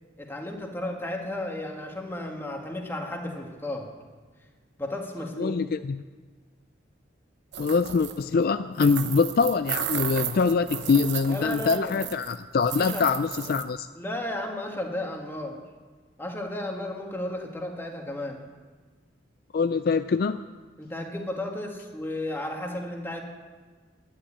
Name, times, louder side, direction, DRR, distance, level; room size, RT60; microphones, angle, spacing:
voice 1, 0.2-3.9 4.8-5.6 11.3-12.1 12.8-13.0 13.9-15.6 16.2-18.4 20.8-23.2, left 1 dB, 10° left, 1 dB, 1.8 m, -33 dB
voice 2, 5.4-6.0 7.6-13.9 19.5-20.4, left 5 dB, 50° left, 11 dB, 0.3 m, -24 dB
sound 1, 7.5-8.2 8.8-12.4 12.6-13.6, right 10 dB, 60° right, 0.8 m, -34 dB
11.0 x 10.0 x 9.8 m, 1.4 s
head